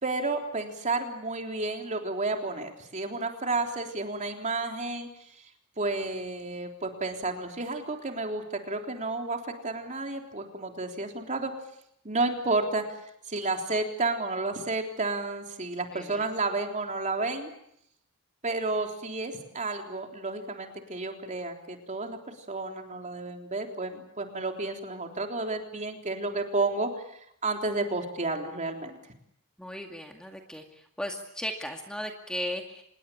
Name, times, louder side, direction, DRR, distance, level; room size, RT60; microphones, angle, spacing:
voice 1, 0.0-5.1 5.4-5.5 5.8-11.5 12.0-12.8 13.3-17.5 18.4-26.9 27.4-29.0, right 3 dB, 35° right, 3 dB, 3.6 m, -31 dB
voice 2, 15.9-16.2 29.6-30.6 31.0-32.8, equal, 5° left, 3 dB, 2.2 m, -36 dB
26.5 x 21.0 x 8.7 m, 0.73 s
head